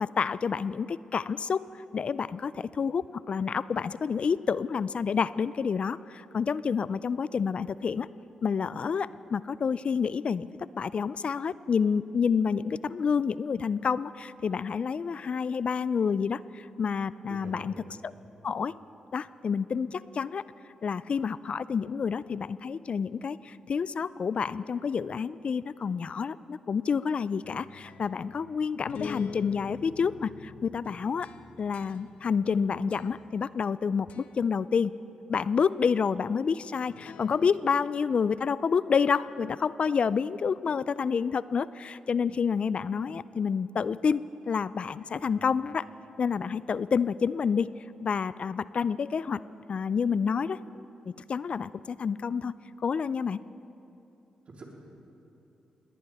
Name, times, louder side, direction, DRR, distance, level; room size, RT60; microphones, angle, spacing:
voice 1, 0.0-8.1 8.4-10.5 10.8-17.7 18.0-18.1 18.4-18.7 19.1-20.4 20.8-31.3 31.6-34.9 35.3-45.9 46.2-47.7 48.0-49.4 49.7-53.4, left 6 dB, 55° left, 18 dB, 0.3 m, -29 dB
voice 2, 17.3-17.8 45.2-45.3 54.4-54.6, right 2 dB, 55° right, -2 dB, 3.5 m, -46 dB
sound 1, 27.4-33.8 34.1-34.5 36.9-37.8, left 6 dB, 75° left, 0.7 m, -46 dB
20.0 x 18.5 x 3.5 m, 3.0 s
supercardioid pair, 55°, 2 cm